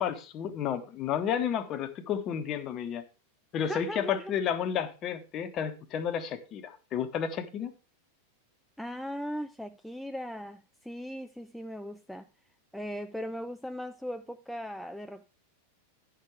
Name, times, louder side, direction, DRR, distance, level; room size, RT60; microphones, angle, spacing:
voice 1, 0.0-3.0 3.5-7.7, left 8 dB, 35° left, 1.1 m, -31 dB
voice 2, 3.6-4.3 8.8-12.3 12.7-15.2, equal, ahead, 0.4 m, -38 dB
10.0 x 6.5 x 4.7 m
figure-of-eight pair, 90°, 0 cm